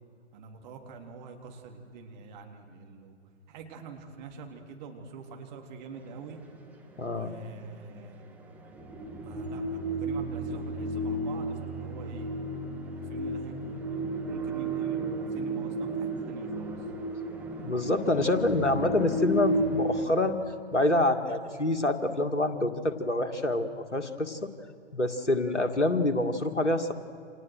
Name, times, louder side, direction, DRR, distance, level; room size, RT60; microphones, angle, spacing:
voice 1, 0.3-3.2 3.5-6.4 7.0-8.2 8.7-8.9 9.2-12.3 13.0-16.9, right 5 dB, 40° right, 3 dB, 3.8 m, -45 dB
voice 2, 7.0-7.3 17.6-20.4 20.7-24.5 24.9-26.9, left 2 dB, 85° left, 8 dB, 2.2 m, -26 dB
sound 1, 7.2-20.0, right 2 dB, 5° right, 2.6 m, -33 dB
29.5 x 27.0 x 6.4 m, 2.5 s
figure-of-eight pair, 115°, 35 cm